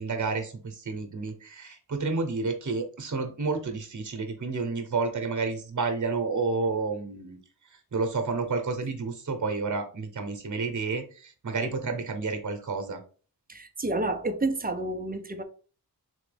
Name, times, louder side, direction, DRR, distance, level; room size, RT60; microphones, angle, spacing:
voice 1, 0.0-7.4 7.7-13.0, right 4 dB, 50° right, 0.9 m, -30 dB
voice 2, 13.5-15.4, right 2 dB, 25° right, 0.5 m, -29 dB
3.8 x 3.1 x 3.3 m
wide cardioid pair, 85°, 39 cm